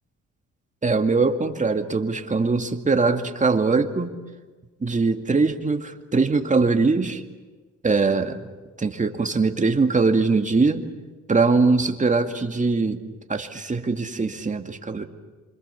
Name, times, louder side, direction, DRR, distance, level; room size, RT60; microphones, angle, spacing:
voice 1, 0.8-4.1 4.8-7.2 7.8-8.5 8.8-10.8 11.3-13.0 13.3-15.0, right 4 dB, 25° right, 6 dB, 2.3 m, -22 dB
27.5 x 26.0 x 7.1 m, 1.3 s
cardioid pair, 90°, 30 cm